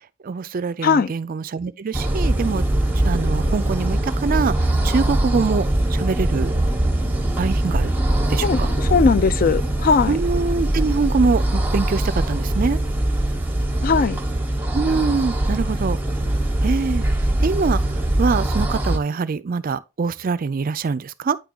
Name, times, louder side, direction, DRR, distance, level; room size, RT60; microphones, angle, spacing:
voice 1, 0.2-2.6 3.0-6.5 7.4-7.9 8.3-8.7 10.1-12.8 14.7-16.0 16.6-17.0 17.4-17.9 18.2-21.4, right 4 dB, 40° right, 0.4 m, -24 dB
sound 1, 1.9-19.0, right 1 dB, 10° right, 0.8 m, -22 dB
voice 2, 8.4-10.2 13.8-14.2, left 5 dB, 45° left, 0.3 m, -19 dB
9.3 x 3.5 x 3.7 m
head